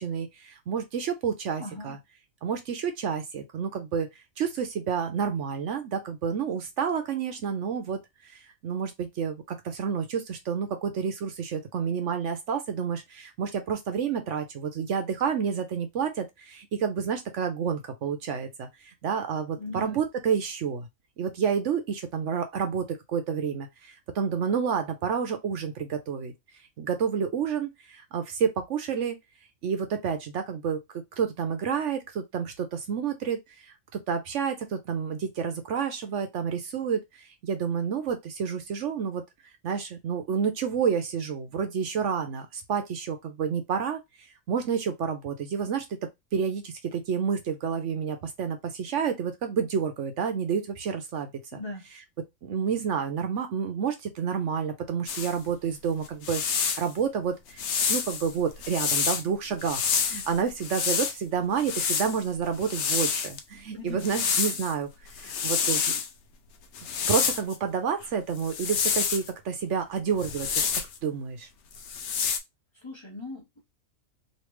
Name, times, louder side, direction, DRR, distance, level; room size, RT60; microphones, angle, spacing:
voice 1, 0.0-2.0 2.4-4.1 4.4-8.0 8.2-20.9 21.2-26.3 26.8-29.2 29.6-37.0 37.4-39.2 39.6-44.0 44.5-45.8 46.3-51.3 52.4-64.9 65.2-65.8 67.1-70.5 71.0-71.5, right 7 dB, 65° right, 1.0 m, -29 dB
voice 2, 1.6-2.0 19.6-20.0 51.5-51.9 63.7-64.3 72.7-73.6, left 2 dB, 25° left, 0.9 m, -39 dB
sound 1, 55.1-55.3 56.1-56.9 57.6-59.2 59.6-61.2 61.6-63.4 64.0-64.7 65.1-66.1 66.7-67.6 68.4-69.3 70.2-71.0 71.7-72.4, left 6 dB, 65° left, 0.8 m, -28 dB
3.2 x 2.8 x 3.1 m
omnidirectional pair, 1.4 m